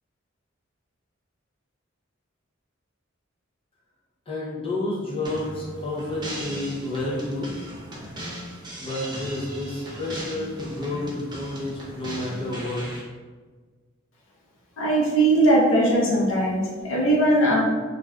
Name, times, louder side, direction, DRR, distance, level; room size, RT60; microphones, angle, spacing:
voice 1, 4.3-7.5 8.8-12.8, left 2 dB, 25° left, -5 dB, 0.6 m, -30 dB
sound 1, 5.2-13.0, equal, 20° right, 0.5 m, -38 dB
voice 2, 14.8-17.6, right 1 dB, 75° left, -4 dB, 0.7 m, -20 dB
2.5 x 2.4 x 3.2 m, 1.4 s
head